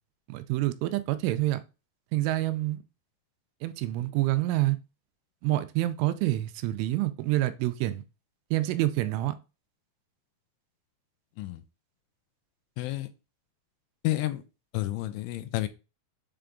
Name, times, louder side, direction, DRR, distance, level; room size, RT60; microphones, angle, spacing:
voice 1, 0.3-1.6 2.1-2.8 3.6-4.8 5.4-8.0 8.5-9.4, right 16 dB, 85° right, 3.1 m, -27 dB
voice 2, 12.8-13.1 14.0-14.4 14.7-15.7, left 16 dB, 85° left, 3.0 m, -30 dB
7.7 x 3.4 x 3.7 m
omnidirectional pair, 5.6 m